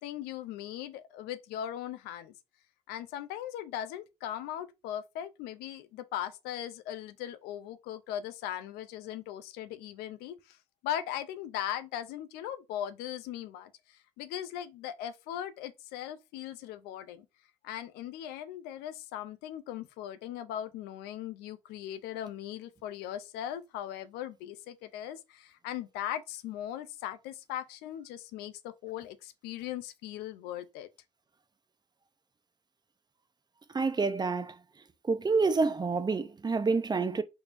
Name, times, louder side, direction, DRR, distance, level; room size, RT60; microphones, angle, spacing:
voice 1, 0.0-2.3 2.9-10.6 10.8-17.3 17.6-30.9, left 11 dB, 85° left, 0.4 m, -39 dB
voice 2, 33.7-34.6 35.1-37.2, right 4 dB, 25° right, 0.5 m, -28 dB
3.4 x 3.1 x 2.5 m
supercardioid pair, 55°, 16 cm